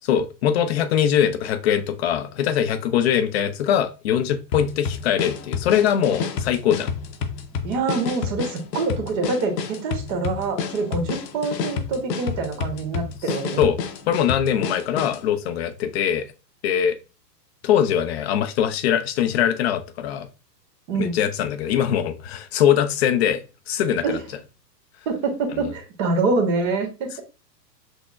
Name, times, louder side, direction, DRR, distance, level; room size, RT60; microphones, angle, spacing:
voice 1, 0.0-6.9 13.3-13.8 14.1-16.3 16.6-17.0 17.6-20.3 21.0-24.2 25.5-25.7, left 9 dB, 40° left, 0.4 m, -22 dB
sound 1, 4.5-15.3, left 6 dB, 75° left, 0.8 m, -29 dB
voice 2, 7.6-13.7 20.9-21.2 24.0-24.2 25.1-27.1, right 3 dB, 45° right, 1.2 m, -25 dB
6.0 x 2.1 x 2.3 m
hypercardioid pair, 125°, 50 cm